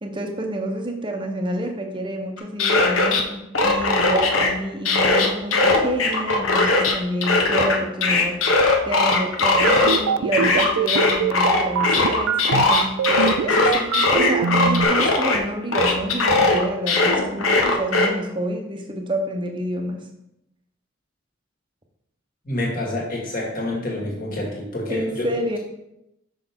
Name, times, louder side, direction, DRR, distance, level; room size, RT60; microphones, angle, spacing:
voice 1, 0.0-8.4 8.8-20.1 24.9-25.6, right 1 dB, 25° right, 4 dB, 0.8 m, -28 dB
sound 1, 2.4-3.2 3.5-4.5 4.9-6.9 7.2-10.0 10.3-15.4 15.7-18.1, left 3 dB, 75° left, 1.0 m, -19 dB
sound 2, 9.6-14.8, right 8 dB, 80° right, 0.3 m, -23 dB
voice 2, 22.4-25.3, left 1 dB, 40° left, -3 dB, 2.0 m, -27 dB
6.0 x 6.0 x 3.6 m, 0.86 s
head